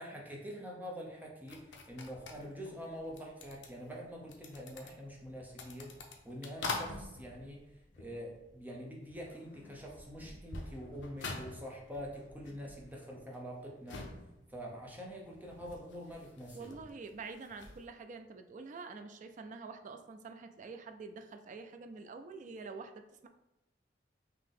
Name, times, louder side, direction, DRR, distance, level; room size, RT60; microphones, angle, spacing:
voice 1, 0.0-5.9 6.2-7.6 8.0-14.1 14.5-16.7, equal, 10° right, -2 dB, 0.7 m, -45 dB
sound 1, 1.5-8.8 9.0-17.8, left 3 dB, 70° left, 0.6 m, -47 dB
voice 2, 16.5-23.3, right 4 dB, 45° right, 6 dB, 0.3 m, -47 dB
3.7 x 2.8 x 3.6 m, 0.97 s
head